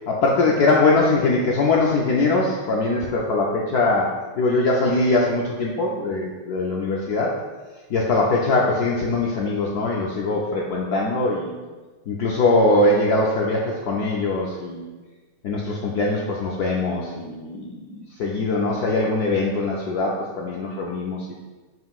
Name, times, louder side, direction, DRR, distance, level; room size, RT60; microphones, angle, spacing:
voice 1, 0.1-4.1 4.4-7.4 7.9-11.6 12.1-14.9 15.4-21.3, left 2 dB, 80° left, -2 dB, 0.8 m, -22 dB
7.7 x 5.6 x 2.4 m, 1.3 s
omnidirectional pair, 2.3 m